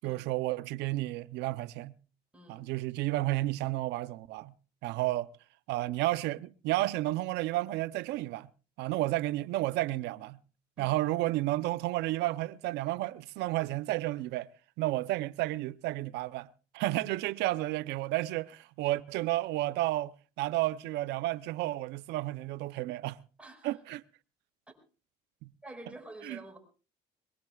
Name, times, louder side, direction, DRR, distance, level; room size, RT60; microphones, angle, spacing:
voice 1, 0.0-1.9 2.5-4.5 4.8-5.3 5.7-8.5 8.8-10.4 10.8-14.5 14.8-16.5 16.7-23.2 23.6-24.0 25.4-25.5 26.2-26.4, right 17 dB, 90° right, 0.7 m, -32 dB
voice 2, 2.3-2.7 10.8-11.0 23.4-23.8 25.6-26.6, right 1 dB, 5° right, 5.1 m, -49 dB
22.5 x 22.0 x 2.4 m
cardioid pair, 110°, 17 cm